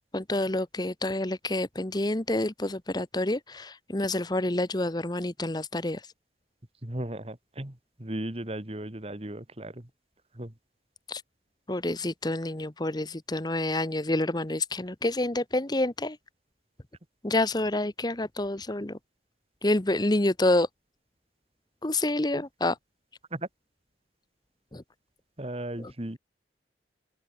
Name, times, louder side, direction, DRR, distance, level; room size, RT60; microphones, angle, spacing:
voice 1, 0.1-6.0 11.1-11.2 11.7-16.2 17.2-19.0 19.6-20.7 21.8-22.7 24.7-24.8, left 1 dB, 25° left, 1.1 m, -28 dB
voice 2, 6.8-9.9 10.3-10.5 22.3-22.4 23.3-23.5 25.4-26.2, right 1 dB, 35° right, 2.1 m, -36 dB
open air
head